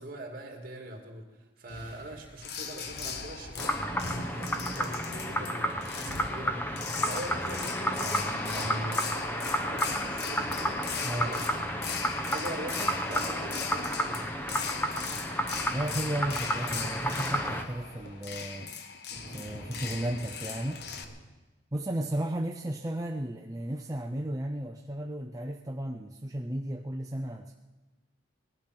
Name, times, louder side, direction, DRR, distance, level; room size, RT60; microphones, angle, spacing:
voice 1, 0.0-10.8 11.2-11.7 12.3-14.4, right 1 dB, 45° right, 3 dB, 2.5 m, -43 dB
sound 1, 1.7-5.3 7.2-15.6 17.0-18.6 19.1-21.2, equal, 80° left, 4.6 m, -50 dB
sound 2, 2.4-21.0, left 6 dB, 55° left, 1.1 m, -39 dB
sound 3, 3.6-17.6, equal, 10° left, 1.0 m, -31 dB
voice 2, 15.7-18.7 19.3-20.9 21.7-27.5, right 1 dB, 20° right, 2 dB, 0.6 m, -34 dB
19.0 x 12.0 x 6.1 m, 1.2 s
head